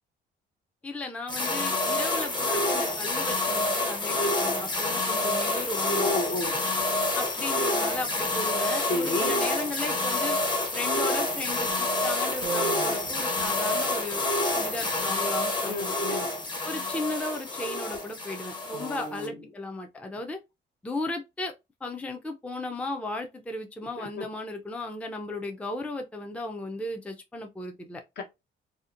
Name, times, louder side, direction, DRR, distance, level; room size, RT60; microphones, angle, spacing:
voice 1, 0.8-6.1 7.1-10.4 10.7-14.2 14.5-16.2 16.6-20.4 20.8-21.5 21.8-28.0, left 2 dB, 5° left, 0.4 m, -35 dB
sound 1, 1.3-19.3, left 2 dB, 25° left, 0.8 m, -28 dB
voice 2, 6.0-6.6 8.8-9.4 15.6-16.3 18.7-19.4 24.0-24.3 28.2-28.3, left 2 dB, 55° left, 0.8 m, -32 dB
sound 2, 11.6-11.8 12.4-13.6 14.5-15.0 15.5-15.6 15.9-16.4 16.7-16.8 17.3-18.0, right 6 dB, 70° right, 0.5 m, -39 dB
2.7 x 2.0 x 2.4 m
cardioid pair, 90°, 20 cm